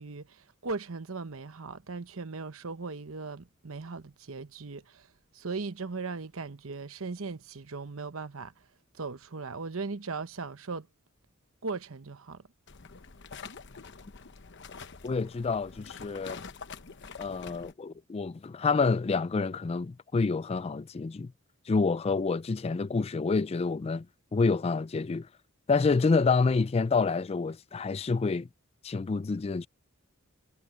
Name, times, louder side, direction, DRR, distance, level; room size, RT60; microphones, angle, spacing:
voice 1, 0.0-5.1 5.3-8.5 9.0-10.9 11.6-12.4, right 4 dB, 75° right, 1.0 m, -38 dB
sound 1, 12.7-17.7, left 5 dB, 55° left, 1.0 m, -46 dB
voice 2, 15.0-16.4 17.2-21.3 21.7-24.1 24.3-25.3 25.7-28.5 28.8-29.7, left 4 dB, 30° left, 0.3 m, -28 dB
head